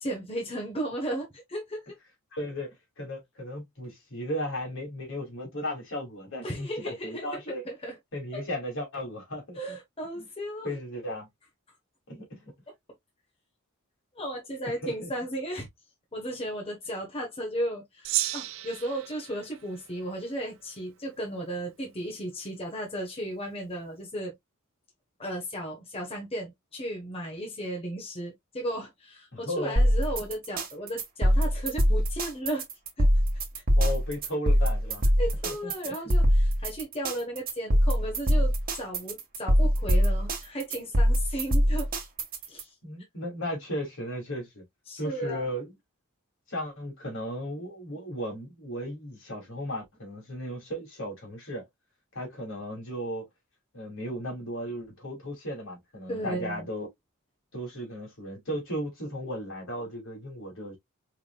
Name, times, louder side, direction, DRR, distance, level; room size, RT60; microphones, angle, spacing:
voice 1, 0.0-1.9 6.4-8.0 8.3-8.4 9.5-10.7 14.1-15.7 16.1-24.3 25.2-32.7 33.0-33.1 35.2-41.9 42.5-42.7 44.9-45.4 56.1-56.7, right 1 dB, 25° left, 1.2 m, -35 dB
voice 2, 2.3-7.6 8.1-9.8 10.2-10.3 10.6-11.3 12.1-12.4 14.6-15.1 29.3-29.8 30.1-30.2 33.8-35.0 35.4-36.1 42.8-44.6 45.0-45.7 46.5-51.6 52.1-53.3 53.7-56.9 57.5-60.8, equal, 65° left, 2.5 m, -35 dB
Gong, 18.0-20.7, right 14 dB, 65° right, 0.4 m, -34 dB
sound 1, 29.8-42.6, equal, 45° right, 1.6 m, -23 dB
4.8 x 3.6 x 2.3 m
head